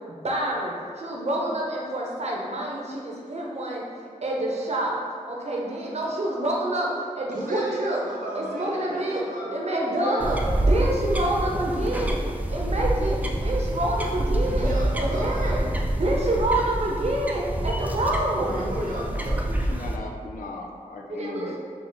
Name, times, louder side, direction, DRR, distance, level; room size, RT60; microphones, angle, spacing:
voice 1, 0.1-3.8 4.2-4.9 5.3-8.0 8.3-9.2 9.5-10.4 10.7-15.6 15.9-18.5 21.1-21.6, right 1 dB, 50° right, -3 dB, 0.8 m, -27 dB
voice 2, 7.3-9.5 9.9-10.8 14.5-15.6 18.3-19.6, right 1 dB, 80° right, -4 dB, 1.0 m, -33 dB
sound 1, 10.2-20.0, right 1 dB, 10° right, 0.3 m, -27 dB
voice 3, 19.7-21.6, left 2 dB, 90° left, 0 dB, 0.5 m, -37 dB
3.9 x 2.7 x 4.0 m, 2.1 s
wide cardioid pair, 85°, 14 cm